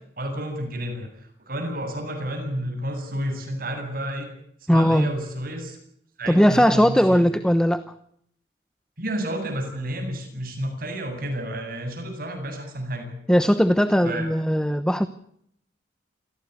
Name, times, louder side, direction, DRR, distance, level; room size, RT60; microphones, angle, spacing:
voice 1, 0.2-4.3 4.7-5.8 6.2-7.3 9.0-13.1 14.0-14.3, right 1 dB, 55° right, 5 dB, 7.9 m, -31 dB
voice 2, 4.7-5.1 6.3-7.9 13.3-15.1, equal, 5° left, 12 dB, 1.0 m, -19 dB
28.0 x 17.0 x 8.2 m, 0.71 s
head